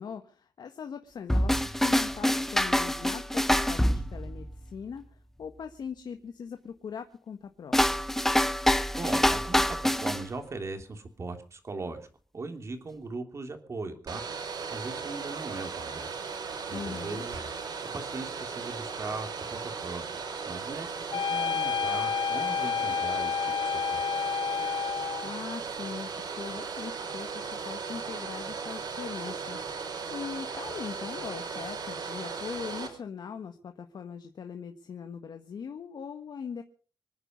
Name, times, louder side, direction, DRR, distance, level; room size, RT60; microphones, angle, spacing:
voice 1, 0.0-7.9 16.7-17.3 25.2-36.6, left 6 dB, 65° left, 6 dB, 1.6 m, -41 dB
sound 1, 1.3-4.7 7.7-10.2, left 1 dB, 5° left, 0.8 m, -26 dB
voice 2, 9.0-12.1 12.3-16.1 16.7-17.7 17.9-23.5 23.9-24.0, right 3 dB, 40° right, 6 dB, 3.2 m, -39 dB
Domestic sounds home sounds, 14.1-32.9, right 5 dB, 65° right, 5.2 m, -37 dB
sound 2, 21.1-25.3, left 6 dB, 85° left, 0.8 m, -30 dB
26.0 x 9.7 x 5.3 m, 0.40 s
wide cardioid pair, 140°, 8 cm